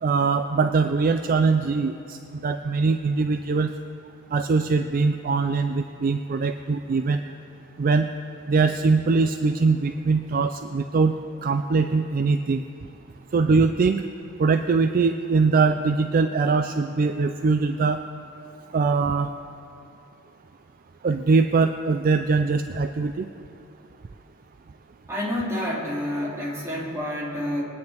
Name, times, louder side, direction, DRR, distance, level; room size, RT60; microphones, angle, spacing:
voice 1, 0.0-2.2 2.4-3.7 4.3-7.2 7.8-8.1 8.5-11.2 11.4-12.6 13.3-14.0 14.4-18.0 18.7-19.3 21.0-23.3, right 4 dB, 45° right, 7 dB, 0.4 m, -22 dB
voice 2, 25.1-27.6, left 1 dB, 15° right, -6 dB, 2.9 m, -28 dB
23.0 x 9.6 x 3.5 m, 2.9 s
head